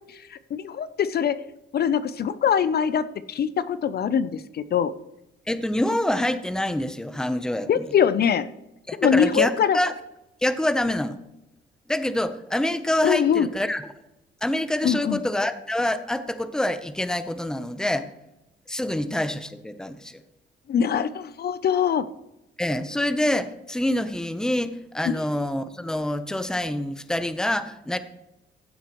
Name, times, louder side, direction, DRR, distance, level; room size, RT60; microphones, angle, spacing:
voice 1, 0.1-1.4 1.7-4.9 7.7-8.5 9.0-9.8 13.0-13.5 14.8-15.2 20.7-22.1, left 8 dB, 55° left, 14 dB, 0.6 m, -23 dB
voice 2, 5.5-7.9 8.9-9.9 10.4-11.2 11.9-13.9 14.4-18.1 18.7-20.2 22.6-28.0, left 1 dB, 5° left, 11 dB, 0.8 m, -26 dB
15.5 x 7.4 x 3.1 m, 0.90 s
cardioid pair, 90°, 20 cm